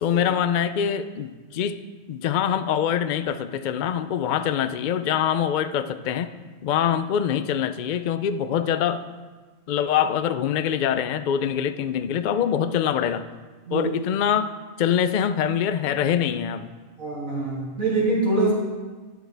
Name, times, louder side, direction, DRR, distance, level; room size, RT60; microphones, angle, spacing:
voice 1, 0.0-1.8 2.1-6.3 6.6-9.0 9.7-13.3 13.7-14.5 14.8-16.7, left 9 dB, 75° left, 11 dB, 0.4 m, -24 dB
voice 2, 17.0-18.5, right 2 dB, 80° right, -6 dB, 3.1 m, -24 dB
12.0 x 10.5 x 3.4 m, 1.4 s
omnidirectional pair, 1.4 m